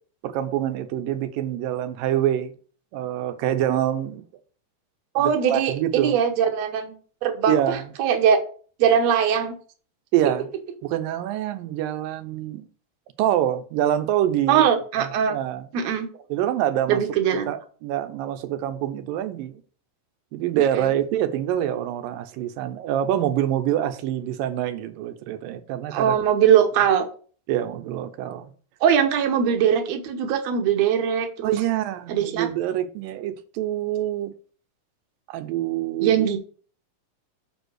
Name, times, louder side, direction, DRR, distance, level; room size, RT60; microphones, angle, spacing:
voice 1, 0.2-2.5 2.9-4.2 5.2-6.1 7.5-7.8 10.1-10.5 10.8-12.7 13.2-14.6 15.0-15.7 16.3-17.0 17.5-19.5 20.3-26.2 27.5-28.5 31.4-34.3 35.3-36.2, right 11 dB, 90° right, 2.5 m, -25 dB
voice 2, 5.1-8.4 8.8-9.5 14.5-15.4 15.7-16.1 16.9-17.5 20.6-20.9 25.9-27.1 28.8-31.5 32.1-32.5 36.0-36.4, right 8 dB, 60° right, 2.1 m, -21 dB
7.1 x 5.3 x 6.4 m
omnidirectional pair, 3.9 m